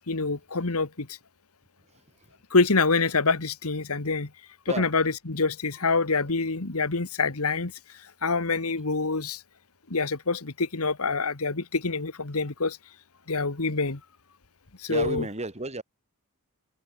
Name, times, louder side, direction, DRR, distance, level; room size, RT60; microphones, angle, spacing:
voice 1, 0.1-1.2 2.5-4.3 4.8-7.7 8.2-9.4 9.9-12.8 13.3-14.0 14.8-15.2, left 4 dB, 70° left, 1.6 m, -26 dB
voice 2, 1.8-2.3 4.7-4.9 14.9-15.8, right 2 dB, 30° right, 3.0 m, -34 dB
head